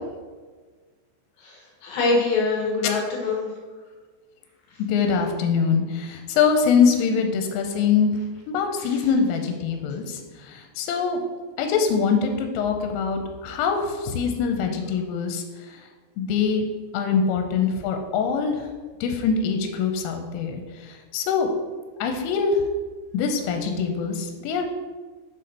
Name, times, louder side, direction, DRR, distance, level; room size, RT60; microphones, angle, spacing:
voice 1, 1.4-3.5 8.8-9.1, left 3 dB, 70° left, -2 dB, 3.1 m, -25 dB
voice 2, 4.9-8.1 8.5-10.2 10.5-11.2 11.6-15.4 16.2-16.7 16.9-18.6 19.0-20.6 21.1-21.5 22.0-22.6 23.1-24.8, left 6 dB, 85° left, 4 dB, 3.3 m, -23 dB
7.2 x 4.2 x 5.2 m, 1.4 s
omnidirectional pair, 5.7 m